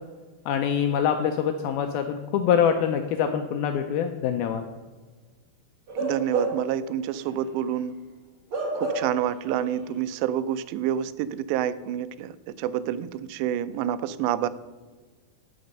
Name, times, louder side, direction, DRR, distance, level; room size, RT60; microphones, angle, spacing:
voice 1, 0.5-4.6, left 8 dB, 85° left, 6 dB, 2.2 m, -24 dB
Bark / Livestock farm animals working animals, 5.9-6.8 7.2-7.4 8.5-9.3 9.6-9.8, right 2 dB, 70° right, 1.2 m, -29 dB
voice 2, 6.0-7.9 8.7-14.5, right 10 dB, 90° right, 14 dB, 2.7 m, -28 dB
11.0 x 6.5 x 5.4 m, 1.4 s
omnidirectional pair, 4.9 m